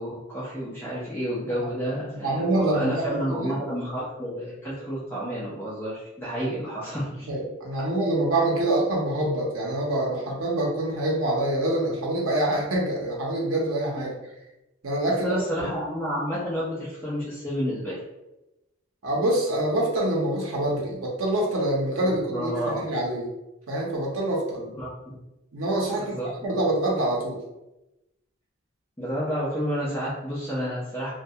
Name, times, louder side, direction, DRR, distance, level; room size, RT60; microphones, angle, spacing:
voice 1, 0.0-7.3 15.2-18.0 22.0-22.8 24.6-25.2 25.9-26.3 29.0-31.1, equal, 10° left, -10 dB, 0.5 m, -30 dB
voice 2, 2.2-3.6 4.7-4.8 7.3-14.1 14.8-15.4 19.0-23.3 23.7-24.6 25.5-27.4, right 1 dB, 85° right, -2 dB, 0.6 m, -25 dB
2.3 x 2.1 x 2.7 m, 0.95 s
head